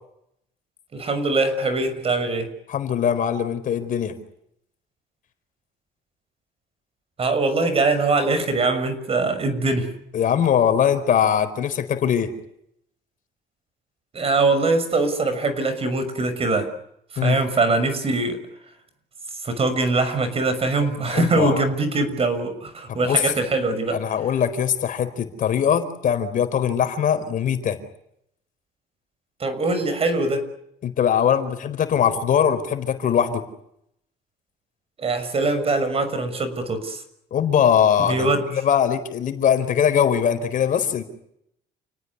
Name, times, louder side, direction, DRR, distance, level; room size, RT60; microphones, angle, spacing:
voice 1, 0.9-2.5 7.2-9.9 14.1-16.7 17.2-18.4 19.4-24.0 29.4-30.5 35.0-37.0 38.1-38.4, right 3 dB, 35° right, 11 dB, 6.3 m, -22 dB
voice 2, 2.7-4.2 10.1-12.3 17.2-17.4 21.1-21.6 22.9-23.3 23.9-27.8 30.8-33.4 37.3-41.0, left 8 dB, 55° left, 9 dB, 4.4 m, -21 dB
29.5 x 19.0 x 9.7 m, 0.75 s
cardioid pair, 110°, 17 cm